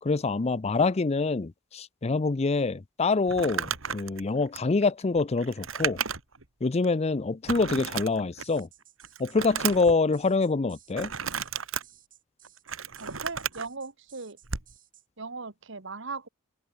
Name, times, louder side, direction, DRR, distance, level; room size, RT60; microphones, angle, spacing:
voice 1, 0.0-6.0 6.6-8.7 9.2-11.1, left 3 dB, 30° left, 0.5 m, -26 dB
Crumpling crinkling, 3.3-6.4 6.8-6.9 7.5-8.6 9.0-10.0 10.9-11.8 12.4-13.7 14.4-14.7, right 7 dB, 85° right, 2.5 m, -33 dB
sound 1, 8.4-15.1, right 12 dB, 45° right, 6.8 m, -57 dB
voice 2, 13.0-14.4 15.2-16.3, right 4 dB, 65° right, 1.7 m, -38 dB
head